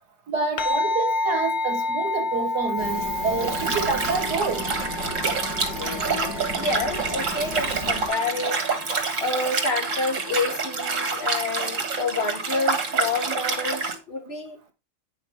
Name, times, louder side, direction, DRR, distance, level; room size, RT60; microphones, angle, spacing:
voice 1, 0.3-4.7, right 4 dB, 75° right, 1.6 m, -27 dB
sound 1, 0.6-9.3, left 2 dB, 70° left, 0.4 m, -30 dB
sound 2, 2.8-8.1, equal, 90° left, 6.7 m, -35 dB
Liquid, 3.4-14.0, right 4 dB, 50° right, 2.0 m, -27 dB
voice 2, 5.8-8.6 9.2-14.7, left 3 dB, 40° left, 1.8 m, -29 dB
9.2 x 5.7 x 4.5 m
omnidirectional pair, 1.8 m